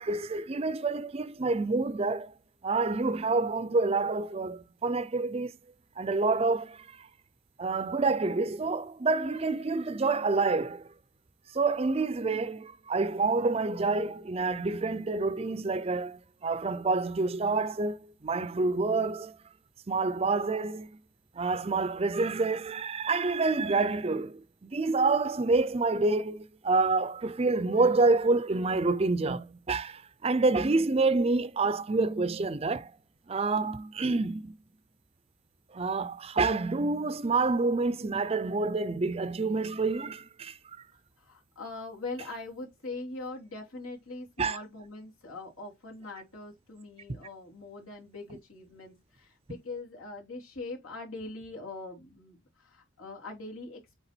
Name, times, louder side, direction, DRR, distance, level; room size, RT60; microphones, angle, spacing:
voice 1, 0.0-2.3 2.6-5.5 6.0-7.1 7.6-10.9 11.5-19.4 19.9-20.9 21.4-32.9 33.3-34.6 35.7-40.8 44.4-44.6, right 3 dB, 30° right, 0.4 m, -28 dB
voice 2, 41.2-54.0, left 3 dB, 90° left, 3.2 m, -42 dB
8.1 x 3.4 x 4.4 m
head